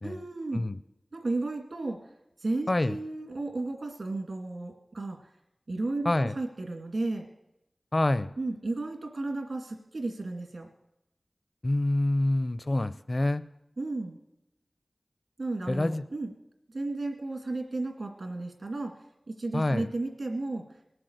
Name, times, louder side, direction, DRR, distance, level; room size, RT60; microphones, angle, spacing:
voice 1, 0.0-0.7 1.1-2.0 2.4-5.2 5.7-7.2 8.4-10.7 13.8-14.2 15.4-16.3 16.7-18.9 19.3-20.6, right 2 dB, 80° right, 3 dB, 2.3 m, -33 dB
voice 2, 7.9-8.3 11.6-13.4 15.7-16.0 19.5-19.9, left 1 dB, 45° left, 14 dB, 0.5 m, -26 dB
19.5 x 7.8 x 8.0 m, 0.86 s
wide cardioid pair, 65°, 0 cm